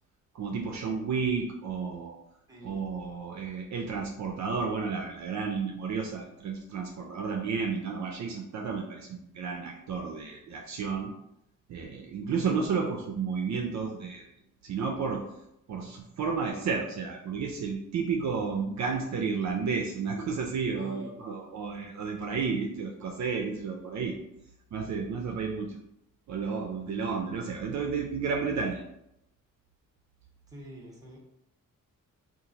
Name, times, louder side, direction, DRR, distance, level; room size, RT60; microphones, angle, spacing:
voice 1, 0.3-2.2 2.6-11.1 11.7-14.3 14.6-15.2 15.7-24.1 24.7-25.8 26.3-28.8, right 5 dB, 60° right, 2 dB, 0.5 m, -32 dB
voice 2, 2.5-2.8 20.8-21.2 30.5-31.2, right 1 dB, 10° right, -2 dB, 0.8 m, -46 dB
2.8 x 2.4 x 3.8 m, 0.84 s
wide cardioid pair, 140°, 32 cm